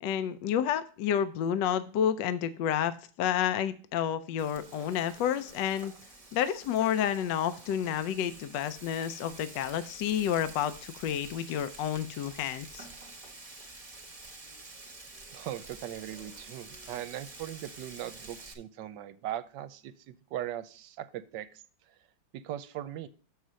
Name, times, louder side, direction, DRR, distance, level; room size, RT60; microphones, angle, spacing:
voice 1, 0.0-5.9 6.3-12.9, left 9 dB, 75° left, 11 dB, 1.2 m, -30 dB
Frying (food), 4.4-18.5, right 3 dB, 25° right, 0.9 m, -49 dB
voice 2, 15.3-22.0 22.3-23.1, right 12 dB, 75° right, 14 dB, 1.2 m, -39 dB
6.6 x 5.7 x 6.1 m, 0.41 s
omnidirectional pair, 2.0 m